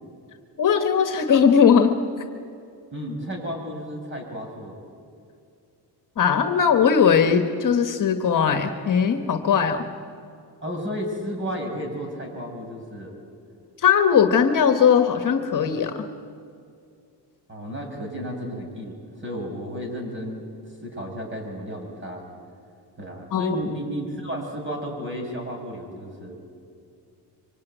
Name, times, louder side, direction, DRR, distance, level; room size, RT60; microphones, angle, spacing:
voice 1, 0.6-2.0 6.2-9.8 13.8-16.0 23.3-23.6, left 7 dB, 45° left, 7 dB, 1.5 m, -19 dB
voice 2, 2.9-4.8 10.6-13.2 17.5-20.4 20.8-22.2 23.0-26.4, equal, 25° right, 2 dB, 6.5 m, -32 dB
25.0 x 24.5 x 9.3 m, 2.4 s
cardioid pair, 135°, 43 cm